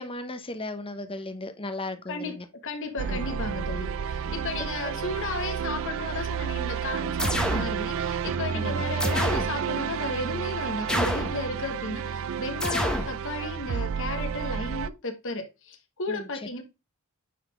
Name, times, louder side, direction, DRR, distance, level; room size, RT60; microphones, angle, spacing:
voice 1, 0.0-2.4 3.1-3.3 4.6-4.9 8.5-8.9 16.1-16.5, left 2 dB, 25° left, 0.9 m, -36 dB
voice 2, 2.6-16.6, left 2 dB, 60° left, 1.5 m, -34 dB
sound 1, 3.0-14.9, right 7 dB, 65° right, 0.4 m, -31 dB
sound 2, 7.2-7.7 9.0-9.5 10.9-11.4 12.6-13.1, equal, 5° left, 0.9 m, -27 dB
9.4 x 4.2 x 3.5 m
head